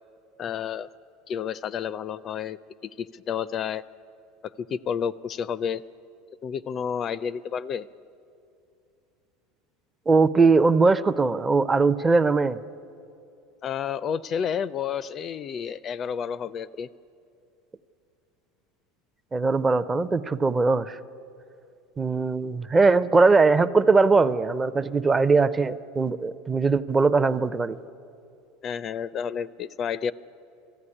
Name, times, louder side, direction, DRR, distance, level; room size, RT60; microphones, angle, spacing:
voice 1, 0.4-0.9 1.3-2.6 2.8-3.8 4.6-5.8 6.4-7.9 13.6-16.9 28.6-30.1, left 7 dB, 35° left, 18 dB, 0.4 m, -30 dB
voice 2, 10.1-12.6 19.3-21.0 22.0-27.8, right 4 dB, 15° right, 14 dB, 0.5 m, -20 dB
19.5 x 14.5 x 9.8 m, 2.7 s
supercardioid pair, 135°, 0 cm